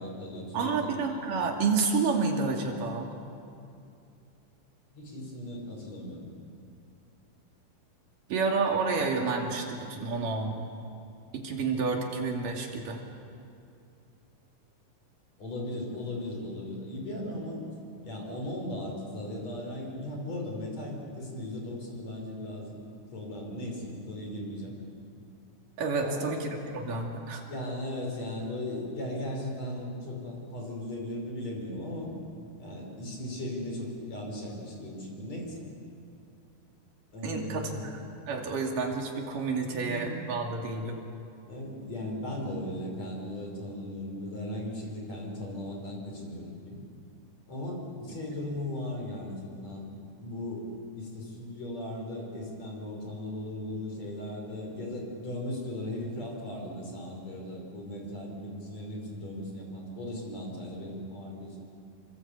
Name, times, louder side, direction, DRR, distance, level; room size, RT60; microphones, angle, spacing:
voice 1, 0.0-1.4 4.9-6.3 15.4-17.6 18.0-22.7 23.1-24.8 26.0-26.4 27.5-32.1 32.6-35.6 37.1-37.8 39.7-40.2 41.5-46.8 47.5-49.9 50.2-50.7 51.0-61.6, left 1 dB, 50° left, 0 dB, 6.2 m, -37 dB
voice 2, 0.5-3.1 8.3-10.7 11.3-13.0 25.8-27.5 37.2-38.0 38.3-41.0, right 4 dB, 70° right, 1 dB, 4.1 m, -29 dB
27.5 x 25.5 x 8.4 m, 2.5 s
omnidirectional pair, 3.9 m